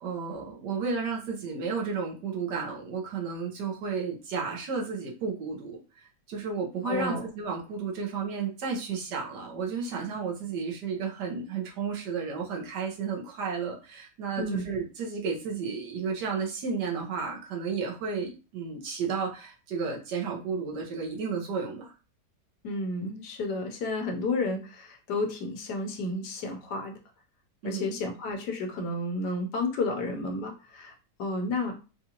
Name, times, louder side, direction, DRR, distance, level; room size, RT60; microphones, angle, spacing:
voice 1, 0.0-21.9 27.6-27.9, right 5 dB, 80° right, -1 dB, 1.6 m, -32 dB
voice 2, 6.8-7.3 14.4-14.6 22.6-27.0 27.6-30.9 31.2-31.8, left 2 dB, 80° left, 3 dB, 1.3 m, -31 dB
4.2 x 2.4 x 2.9 m, 0.33 s
omnidirectional pair, 1.8 m